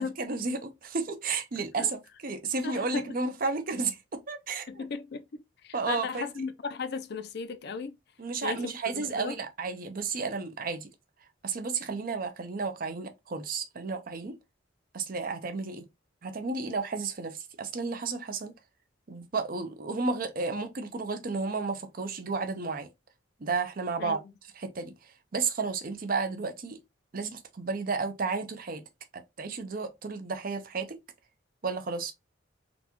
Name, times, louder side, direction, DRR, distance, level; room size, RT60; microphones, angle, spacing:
voice 1, 0.0-4.8 5.7-6.3 8.2-10.9 11.4-14.4 14.9-15.8 16.2-18.5 19.1-22.9 23.4-24.2 24.6-24.9 25.3-26.8 27.1-28.8 29.1-31.0 31.6-32.1, right 4 dB, 45° right, 0.6 m, -32 dB
voice 2, 2.6-3.1 4.7-8.0 8.4-9.4 24.0-24.3, left 4 dB, 55° left, 0.4 m, -36 dB
3.9 x 2.3 x 2.9 m
head